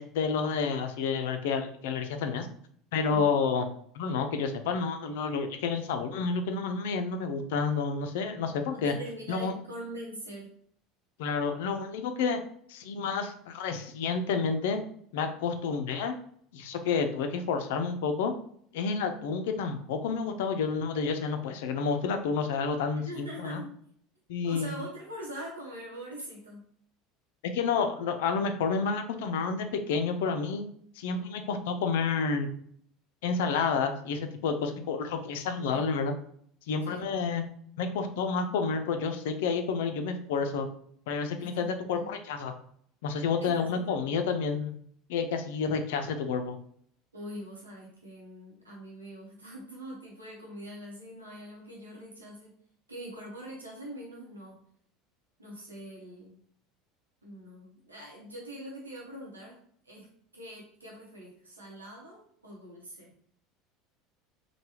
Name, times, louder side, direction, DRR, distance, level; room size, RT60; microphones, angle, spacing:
voice 1, 0.0-2.5 2.9-3.7 3.9-8.9 9.3-9.5 11.2-12.4 12.7-14.8 15.1-16.1 16.5-18.3 18.7-23.6 24.3-24.8 27.4-30.7 31.0-32.5 33.2-36.1 36.7-37.4 37.8-40.7 41.1-42.5 43.0-44.8 45.1-46.6, left 5 dB, 65° left, 7 dB, 0.3 m, -30 dB
voice 2, 8.7-10.5 23.0-23.7 24.4-26.7 35.7-35.8 36.8-37.0 41.4-42.2 43.4-44.1 47.1-52.5 52.9-54.6 55.4-56.4 57.2-59.6 59.8-60.1 60.3-63.1, equal, 90° right, -4 dB, 0.7 m, -43 dB
3.3 x 2.1 x 2.9 m, 0.62 s
figure-of-eight pair, 70°, 0 cm